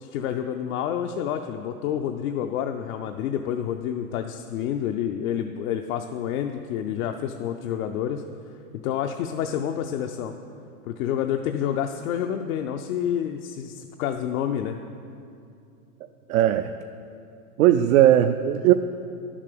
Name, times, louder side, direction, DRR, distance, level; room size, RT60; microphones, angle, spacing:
voice 1, 0.0-8.2 8.8-10.3 10.8-14.8, left 9 dB, 65° left, 5 dB, 0.7 m, -28 dB
voice 2, 16.3-16.7 17.6-18.7, right 12 dB, 65° right, 8 dB, 0.5 m, -18 dB
10.5 x 7.4 x 6.7 m, 2.5 s
supercardioid pair, 135°, 46 cm